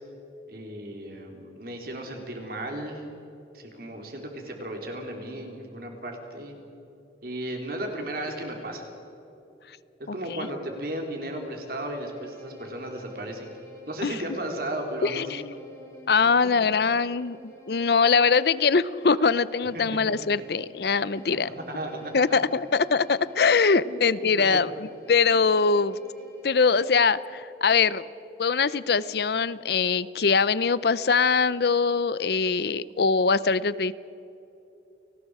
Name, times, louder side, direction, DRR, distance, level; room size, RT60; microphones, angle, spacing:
voice 1, 0.5-3.0 3.5-6.5 7.2-8.9 10.0-13.5 13.9-15.4 21.7-22.0 23.8-24.0 24.5-24.6, right 1 dB, 55° right, 2 dB, 3.6 m, -35 dB
voice 2, 10.1-10.5 14.0-14.2 15.0-15.4 16.1-17.4 17.7-21.5 22.1-26.0 26.4-28.1 28.4-33.9, left 5 dB, 60° left, 17 dB, 0.5 m, -22 dB
Bowed string instrument, 11.1-27.5, equal, 15° left, 3.3 m, -49 dB
29.5 x 19.0 x 4.9 m, 3.0 s
head